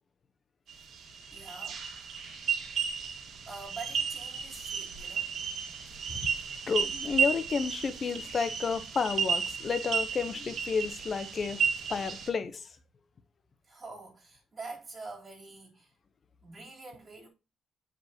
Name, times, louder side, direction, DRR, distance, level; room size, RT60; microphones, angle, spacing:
sound 1, 0.7-12.3, right 6 dB, 65° right, 1.7 m, -33 dB
voice 1, 1.3-1.8 3.5-5.3 13.6-15.9 16.4-17.3, right 3 dB, 35° right, 3.5 m, -45 dB
voice 2, 6.7-11.6 11.9-12.7, left 5 dB, 45° left, 0.8 m, -31 dB
9.2 x 5.1 x 2.9 m
cardioid pair, 90°, 0 cm